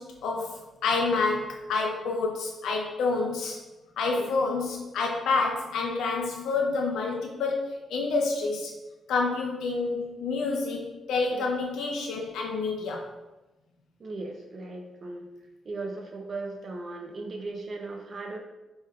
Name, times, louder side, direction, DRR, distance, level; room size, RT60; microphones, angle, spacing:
voice 1, 0.0-3.6 4.0-8.8 9.1-13.1, left 3 dB, 90° left, 0 dB, 0.4 m, -28 dB
voice 2, 14.0-15.3 15.6-18.4, right 3 dB, 50° right, 2 dB, 0.6 m, -37 dB
4.8 x 3.0 x 2.3 m, 1.0 s
cardioid pair, 75°, 0 cm